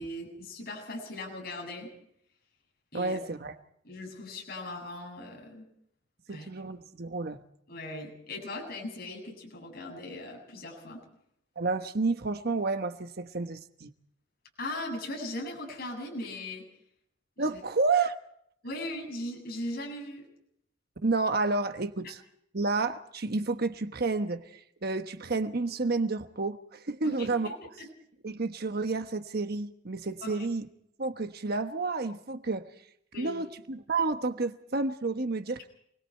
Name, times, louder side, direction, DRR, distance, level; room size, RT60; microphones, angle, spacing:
voice 1, 0.0-1.9 2.9-3.2 3.8-5.6 6.3-6.5 7.7-11.0 14.6-16.6 17.4-17.6 18.6-20.2 27.0-27.9 30.2-30.5 33.1-33.4, left 1 dB, 55° left, 0 dB, 7.7 m, -39 dB
voice 2, 2.9-3.5 6.3-7.4 11.6-13.9 17.4-18.1 21.0-22.2 22.5-27.6 28.2-30.7 31.0-32.7 33.2-35.7, right 3 dB, 55° right, 8 dB, 1.2 m, -30 dB
28.0 x 21.0 x 4.5 m, 0.71 s
head